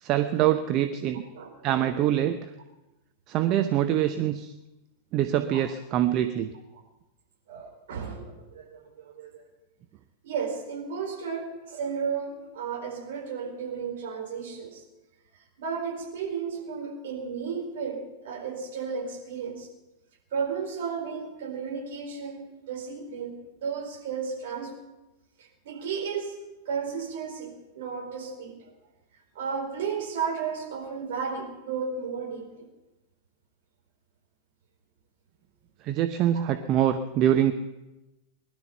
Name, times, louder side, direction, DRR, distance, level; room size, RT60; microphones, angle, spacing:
voice 1, 0.0-1.2 1.6-2.5 3.3-4.5 5.1-6.5 35.8-37.5, right 11 dB, 40° right, 8 dB, 0.8 m, -24 dB
voice 2, 1.3-1.9 5.5-5.6 7.5-9.4 10.2-14.8 15.6-19.7 20.3-24.7 25.4-26.4 26.6-28.6 29.3-32.7, right 6 dB, 55° right, 1 dB, 4.5 m, -34 dB
20.5 x 12.0 x 5.6 m, 1.0 s
figure-of-eight pair, 90°, 0 cm